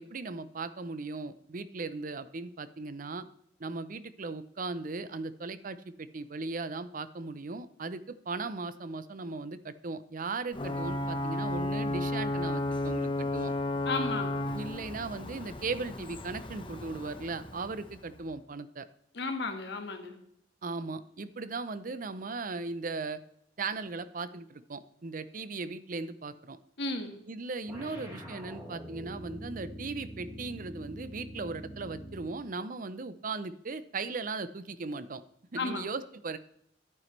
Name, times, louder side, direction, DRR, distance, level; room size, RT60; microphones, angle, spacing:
voice 1, 0.0-3.3 3.6-13.5 14.5-18.9 20.6-23.2 23.6-26.6 27.3-35.2 35.5-36.4, right 3 dB, 50° right, 14 dB, 0.6 m, -38 dB
Ocean / Boat Water vehicle / Alarm, 10.5-18.1, left 1 dB, 30° left, 1.1 m, -33 dB
voice 2, 13.8-14.3 19.1-20.1 26.8-27.1 35.6-35.8, left 3 dB, 70° left, 6 dB, 1.6 m, -33 dB
sound 1, 27.7-32.4, equal, 15° right, 4.2 m, -44 dB
11.0 x 9.2 x 3.3 m, 0.70 s
head